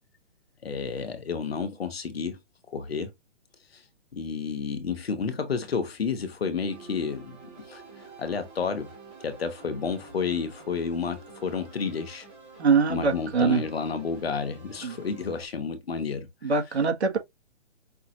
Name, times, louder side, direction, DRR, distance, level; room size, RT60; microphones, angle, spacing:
voice 1, 0.6-2.4 2.7-3.1 3.7-3.8 4.1-7.4 7.7-7.8 8.2-8.9 9.2-12.3 12.9-16.3, left 5 dB, 55° left, 1.2 m, -31 dB
sound 1, 6.7-15.5, right 4 dB, 10° right, 0.9 m, -48 dB
voice 2, 12.6-13.6 14.8-15.0 16.4-17.2, right 5 dB, 65° right, 1.8 m, -23 dB
5.5 x 2.7 x 3.0 m
hypercardioid pair, 175°, 36 cm